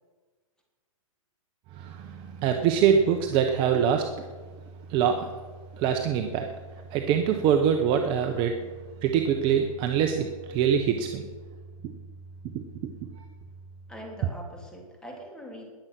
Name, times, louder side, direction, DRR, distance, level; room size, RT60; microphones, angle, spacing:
voice 1, 1.7-4.1 4.9-5.3 5.8-6.5 6.9-8.6 9.0-11.2 12.5-12.6, right 8 dB, 30° right, 5 dB, 0.9 m, -24 dB
voice 2, 13.9-15.6, equal, 5° left, 0 dB, 3.1 m, -42 dB
20.5 x 8.0 x 6.0 m, 1.4 s
hypercardioid pair, 150°, 18 cm